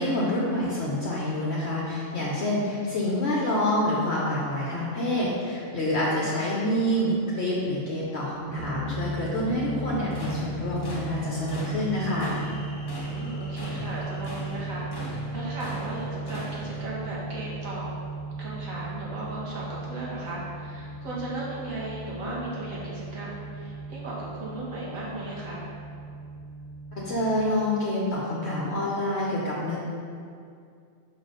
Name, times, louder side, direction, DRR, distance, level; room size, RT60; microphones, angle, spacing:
voice 1, 0.0-12.3 26.9-29.8, left 1 dB, 55° left, -5 dB, 1.0 m, -27 dB
sound 1, 8.5-27.5, right 2 dB, 15° right, 0.9 m, -36 dB
sound 2, 9.9-16.8, equal, 20° left, 0.7 m, -40 dB
voice 2, 13.1-17.9 18.4-25.7, right 2 dB, 75° right, -6 dB, 1.8 m, -36 dB
5.9 x 4.0 x 5.1 m, 2.3 s
omnidirectional pair, 1.4 m